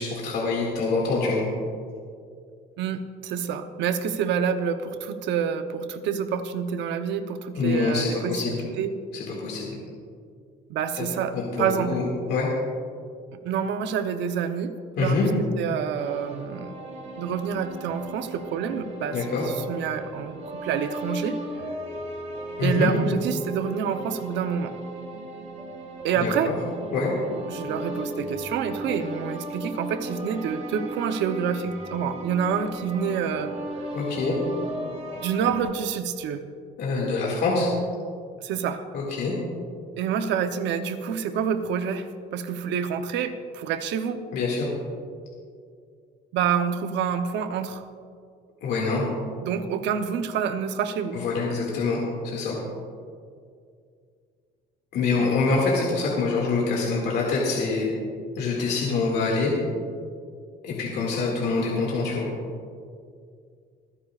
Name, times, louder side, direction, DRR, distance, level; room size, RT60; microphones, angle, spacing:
voice 1, 0.0-1.4 7.6-8.5 9.1-9.8 11.0-11.1 11.3-12.0 12.3-12.5 15.0-15.3 19.1-19.4 22.6-22.9 26.2-26.6 26.9-27.1 33.9-34.4 36.8-37.7 38.9-39.3 44.3-44.7 48.6-49.0 51.1-52.0 52.2-52.6 54.9-57.9 58.3-59.5 60.6-62.3, left 4 dB, 65° left, -3 dB, 2.2 m, -25 dB
voice 2, 2.8-8.9 10.7-11.9 13.4-14.7 15.0-16.7 17.2-21.4 22.6-24.7 26.0-26.5 27.5-33.5 35.2-36.4 38.4-38.8 40.0-42.1 42.3-44.2 46.3-47.8 49.4-51.2, right 7 dB, 75° right, 8 dB, 0.9 m, -27 dB
sound 1, 16.0-35.6, right 1 dB, 35° right, 2.0 m, -36 dB
26.0 x 9.9 x 2.5 m, 2.2 s
cardioid pair, 160°, 18 cm